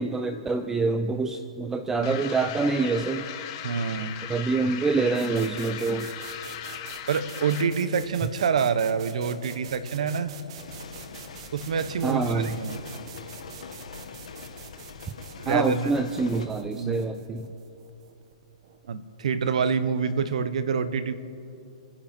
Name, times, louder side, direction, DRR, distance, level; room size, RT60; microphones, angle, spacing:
voice 1, 0.0-3.2 4.3-6.1 12.0-12.6 15.5-17.5, right 3 dB, 10° right, 8 dB, 0.5 m, -26 dB
sound 1, 2.0-7.8, left 10 dB, 40° left, 1.2 m, -38 dB
voice 2, 3.6-4.2 7.1-10.3 11.5-12.8 15.4-15.9 16.7-17.0 18.9-21.1, right 6 dB, 75° right, 13 dB, 1.1 m, -26 dB
sound 2, 5.1-18.9, right 8 dB, 55° right, 1.4 m, -46 dB
sound 3, 10.6-16.5, left 5 dB, 80° left, 1.5 m, -43 dB
28.5 x 10.0 x 4.5 m, 2.6 s
hypercardioid pair, 140°, 4 cm